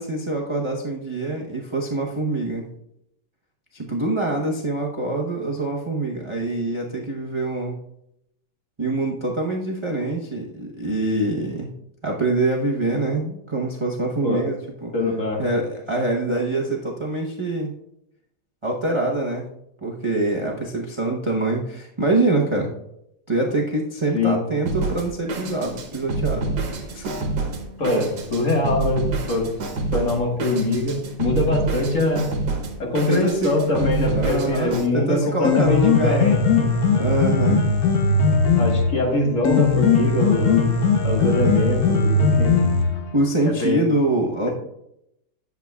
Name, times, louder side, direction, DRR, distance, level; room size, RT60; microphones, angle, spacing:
voice 1, 0.0-2.7 3.7-7.8 8.8-11.7 12.0-14.9 15.4-17.7 18.6-19.5 19.8-22.7 23.3-26.5 26.9-27.2 33.1-33.5 34.1-36.2 36.9-37.6 43.1-44.5, right 2 dB, 25° right, -2 dB, 0.6 m, -24 dB
voice 2, 14.9-15.4 24.1-24.4 27.8-29.5 29.9-32.3 32.8-36.4 38.6-40.7 41.0-42.6 43.4-43.8, left 2 dB, 50° left, 0 dB, 1.8 m, -23 dB
Drum kit, 24.7-34.9, right 3 dB, 85° right, 1.7 m, -28 dB
Piano, 35.3-43.2, left 4 dB, 65° left, 1.4 m, -19 dB
10.5 x 7.5 x 2.3 m, 0.80 s
omnidirectional pair, 1.8 m